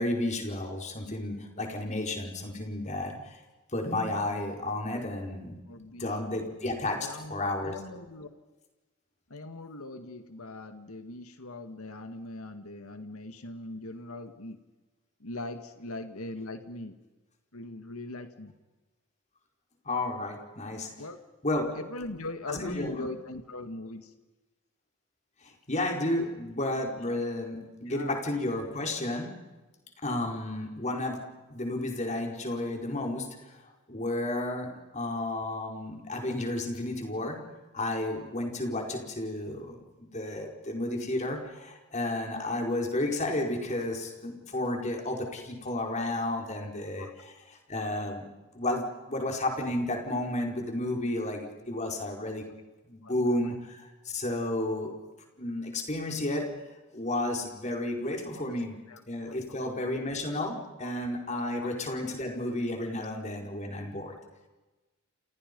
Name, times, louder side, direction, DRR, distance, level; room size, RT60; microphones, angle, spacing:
voice 1, 0.0-3.4 3.7-5.5 6.0-7.7 19.8-20.9 21.4-21.7 22.5-23.1 25.4-29.4 30.0-31.2 31.5-37.4 37.7-48.3 48.5-52.5 52.9-54.9 55.4-56.5 56.9-58.7 59.1-64.2, left 1 dB, 35° left, 2 dB, 4.9 m, -32 dB
voice 2, 5.7-6.4 7.0-8.3 9.3-14.6 15.2-16.9 17.5-18.5 21.0-21.2 21.7-24.1 27.9-28.1 47.0-47.1 53.0-53.1 58.3-58.5 58.9-59.0 59.3-59.7 60.8-60.9 61.6-61.7, left 2 dB, 80° left, 8 dB, 2.0 m, -41 dB
29.0 x 28.5 x 5.5 m, 1.2 s
head